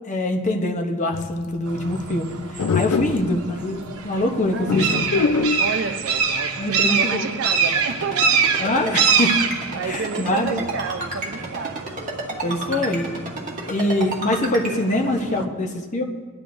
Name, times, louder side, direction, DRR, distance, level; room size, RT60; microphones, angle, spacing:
voice 1, 0.1-4.9 6.6-7.3 8.6-9.4 9.8-10.6 12.4-13.1 13.7-16.0, left 1 dB, 35° left, 2 dB, 0.9 m, -24 dB
sound 1, 1.1-1.4 2.6-3.4 4.7-5.7, left 4 dB, 85° left, 0.5 m, -23 dB
sound 2, 1.7-15.4, right 6 dB, 90° right, 0.9 m, -26 dB
voice 2, 4.5-8.4 8.8-8.9 9.7-11.9 12.3-12.8 14.7-15.6, right 5 dB, 55° right, 7 dB, 0.6 m, -31 dB
Ringtone, 7.9-14.7, right 2 dB, 35° right, 2.0 m, -30 dB
18.0 x 11.5 x 2.6 m, 1.5 s
head